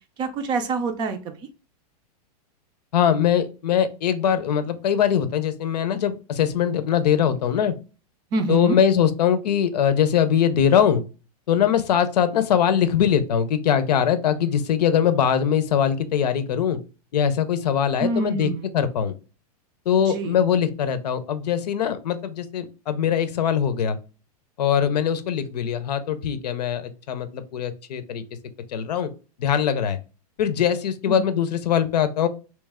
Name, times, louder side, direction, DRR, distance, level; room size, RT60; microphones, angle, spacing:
voice 1, 0.2-1.3 8.3-8.8 18.0-18.8 20.1-20.4 31.1-31.2, right 3 dB, 20° right, 8 dB, 0.4 m, -26 dB
voice 2, 2.9-7.7 8.5-11.0 11.5-16.8 17.1-19.1 19.9-24.0 24.6-28.2 28.7-29.1 29.4-30.0 30.4-32.3, left 8 dB, 85° left, 12 dB, 0.7 m, -22 dB
3.2 x 3.0 x 3.5 m, 0.34 s
supercardioid pair, 155°, 20 cm